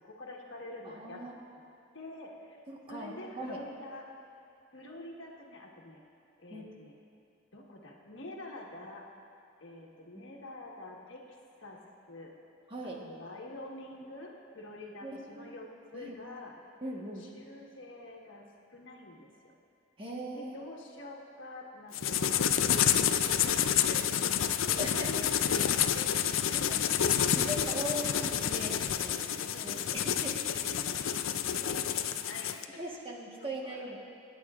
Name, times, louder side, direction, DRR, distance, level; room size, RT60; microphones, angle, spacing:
voice 1, 0.0-1.3 1.9-2.6 2.9-4.1 4.7-6.0 6.4-6.9 7.5-9.1 9.6-11.8 12.1-12.3 12.8-16.5 17.2-19.5 20.3-26.5 26.8-27.0 29.1-30.0 30.3-32.8 33.4-34.0, left 2 dB, 65° left, -2 dB, 1.4 m, -47 dB
voice 2, 0.8-1.4 2.7-3.6 6.5-6.7 10.1-10.3 12.7-13.0 15.0-15.5 15.9-16.1 16.8-17.2 20.0-20.6 24.7-25.1 26.5-26.8 27.3-29.2 29.6-30.3 32.8-34.0, right 1 dB, 30° right, -2 dB, 1.3 m, -40 dB
sound 1, 21.9-32.7, left 9 dB, 80° left, 0.5 m, -29 dB
25.0 x 9.7 x 2.5 m, 2.5 s
head